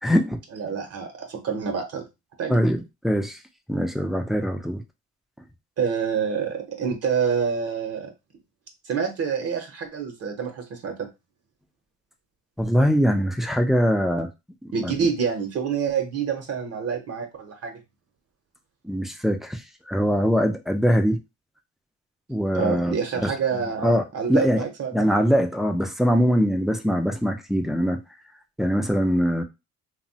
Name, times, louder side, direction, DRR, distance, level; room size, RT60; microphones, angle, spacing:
voice 1, 0.0-0.4 2.5-3.4 3.7-4.8 12.6-14.3 14.6-15.0 18.8-21.2 22.3-23.3 23.8-24.6 24.9-28.0 28.6-29.4, equal, ahead, 5 dB, 0.4 m, -22 dB
voice 2, 0.5-2.0 2.4-2.6 5.8-8.1 8.8-11.1 14.7-17.8 22.5-25.1, right 6 dB, 55° right, 4 dB, 0.7 m, -27 dB
2.9 x 2.1 x 2.7 m, 0.25 s
cardioid pair, 90°, 30 cm